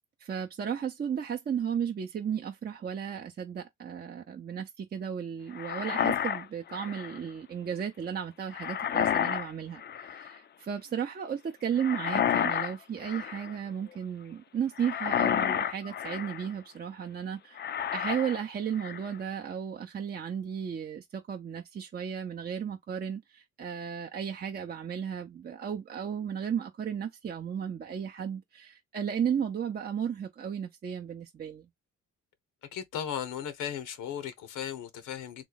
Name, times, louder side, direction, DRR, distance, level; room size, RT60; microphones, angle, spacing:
voice 1, 0.2-17.6 17.9-31.7, right 8 dB, 30° right, 0.5 m, -34 dB
sound 1, 5.6-7.2 8.5-9.5 9.8-10.3 11.8-12.7 13.0-13.6 14.8-16.5 17.6-18.4 18.7-19.2, left 9 dB, 35° left, 0.4 m, -30 dB
voice 2, 32.6-35.4, left 9 dB, 85° left, 0.8 m, -36 dB
3.1 x 2.3 x 3.8 m
cardioid pair, 90°, 30 cm